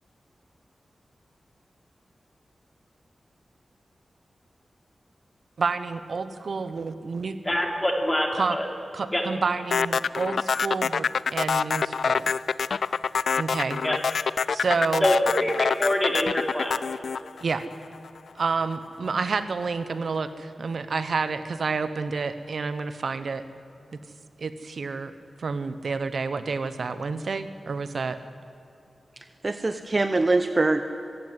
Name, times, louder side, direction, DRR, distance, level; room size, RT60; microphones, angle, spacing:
voice 1, 5.6-7.4 8.3-8.6 8.9-12.3 13.4-13.8 14.5-15.1 17.4-17.6 18.3-23.5 24.4-25.1 25.4-28.2, right 4 dB, 65° right, 12 dB, 1.0 m, -29 dB
voice 2, 7.4-8.7 9.1-9.2 13.8-14.0 15.0-16.8, left 1 dB, 15° left, 2 dB, 3.2 m, -25 dB
sound 1, 9.7-18.1, left 5 dB, 85° left, 0.5 m, -25 dB
voice 3, 29.2-30.8, right 2 dB, 30° right, 9 dB, 0.9 m, -24 dB
24.5 x 15.5 x 9.7 m, 2.8 s
wide cardioid pair, 140°, 0 cm